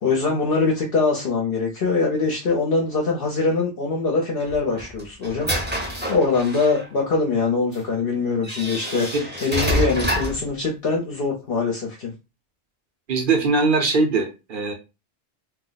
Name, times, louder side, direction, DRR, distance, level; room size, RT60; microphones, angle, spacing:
voice 1, 0.0-5.5 6.1-12.1, left 4 dB, 60° left, -1 dB, 0.9 m, -23 dB
sound 1, 4.4-6.9 7.7-7.8 8.4-10.5, equal, 10° right, 0.7 m, -27 dB
voice 2, 13.1-14.7, right 3 dB, 55° right, 3 dB, 0.8 m, -21 dB
2.7 x 2.1 x 3.9 m, 0.27 s
omnidirectional pair, 1.2 m